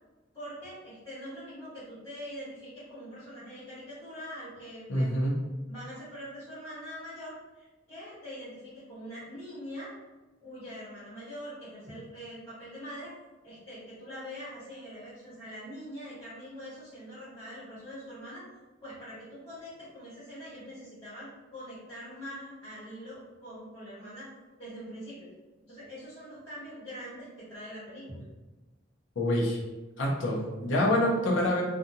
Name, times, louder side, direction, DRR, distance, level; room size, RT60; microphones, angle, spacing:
voice 1, 0.3-5.2 5.7-9.9 10.4-13.1 13.4-18.4 18.8-24.3 24.6-25.3 25.6-28.2 31.4-31.6, equal, 15° left, -12 dB, 1.3 m, -43 dB
voice 2, 4.9-5.4 29.2-29.6 30.0-31.6, left 1 dB, 90° left, -3 dB, 0.7 m, -26 dB
2.7 x 2.4 x 2.6 m, 1.2 s
head